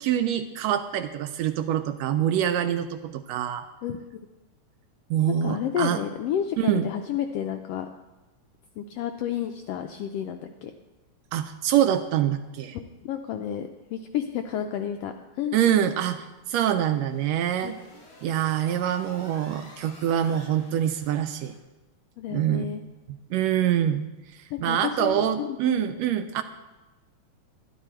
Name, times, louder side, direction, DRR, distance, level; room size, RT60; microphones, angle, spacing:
voice 1, 0.0-3.6 5.1-6.0 6.6-6.9 11.3-12.8 15.5-17.8 18.2-21.5 22.3-22.6 23.3-24.0 24.6-26.4, right 10 dB, 80° right, 9 dB, 1.6 m, -25 dB
voice 2, 3.8-4.2 5.3-7.9 8.8-10.7 12.7-15.6 17.6-17.7 22.2-22.8 24.5-25.9, left 9 dB, 85° left, 6 dB, 1.4 m, -31 dB
sound 1, 16.6-21.6, left 2 dB, 65° left, 4.0 m, -51 dB
11.5 x 11.0 x 4.4 m, 1.1 s
omnidirectional pair, 3.3 m